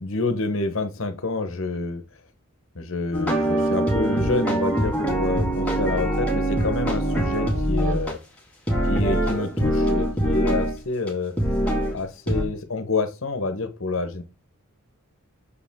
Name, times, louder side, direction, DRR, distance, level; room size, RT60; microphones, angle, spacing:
voice 1, 0.0-2.0 2.7-8.2 8.9-11.3 11.9-14.2, left 3 dB, 65° left, 10 dB, 0.9 m, -28 dB
sound 1, 3.1-8.1 8.7-10.8 11.1-11.2 11.4-11.9 12.3-12.4, right 1 dB, 5° left, 1.9 m, -23 dB
6.7 x 4.8 x 3.5 m, 0.29 s
head